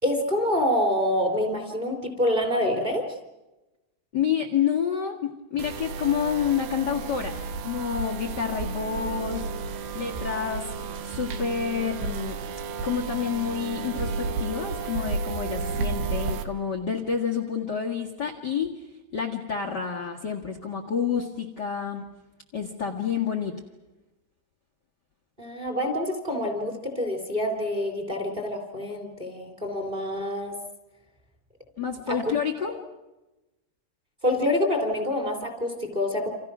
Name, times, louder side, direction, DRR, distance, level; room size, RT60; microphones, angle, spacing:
voice 1, 0.0-3.0 12.0-12.1 25.4-30.6 32.1-32.3 34.2-36.3, left 1 dB, 10° right, 4 dB, 2.9 m, -26 dB
voice 2, 4.1-7.4 7.6-9.5 9.9-10.7 11.0-12.4 12.8-18.7 19.1-22.1 22.5-23.5 31.8-32.7, left 7 dB, 50° left, -1 dB, 1.2 m, -28 dB
sound 1, 5.6-16.4, right 4 dB, 70° right, 3.1 m, -32 dB
29.0 x 27.0 x 6.2 m, 1.0 s
omnidirectional pair, 4.9 m